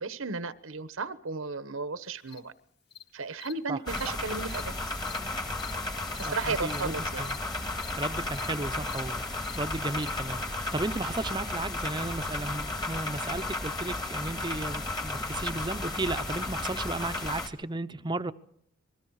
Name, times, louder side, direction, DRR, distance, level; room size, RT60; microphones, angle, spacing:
voice 1, 0.0-2.5 3.1-4.7 6.1-7.3, right 4 dB, 90° right, 1.2 m, -34 dB
Cricket, 2.3-2.4 2.9-3.0 3.4-3.5 4.0-4.1 4.4-4.6 5.0-5.2 5.6-5.7 6.1-6.3 6.6-6.8 7.2-7.4 7.7-7.9 8.3-8.5 8.8-9.0 9.4-9.6 10.0-10.1, left 10 dB, 55° left, 2.4 m, -45 dB
sound 1, 3.9-17.5, left 2 dB, 20° left, 1.9 m, -34 dB
voice 2, 6.2-7.4 8.0-9.2 9.6-18.3, right 2 dB, 20° right, 0.8 m, -34 dB
27.5 x 21.5 x 4.9 m
head